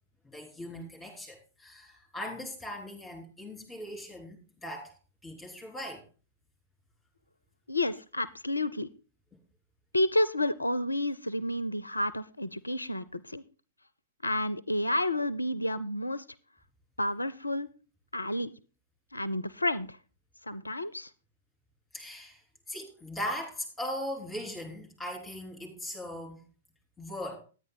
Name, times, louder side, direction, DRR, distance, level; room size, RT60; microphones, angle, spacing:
voice 1, 0.3-4.9 5.2-6.0 21.9-22.4 22.7-26.4 27.0-27.4, left 1 dB, 5° left, 1 dB, 3.3 m, -39 dB
voice 2, 7.7-8.9 9.9-13.4 14.2-16.2 17.0-17.7 18.1-18.5 19.1-20.0 20.5-21.1, left 1 dB, 80° left, 17 dB, 0.4 m, -30 dB
10.0 x 9.4 x 3.8 m, 0.35 s
figure-of-eight pair, 110°, 0 cm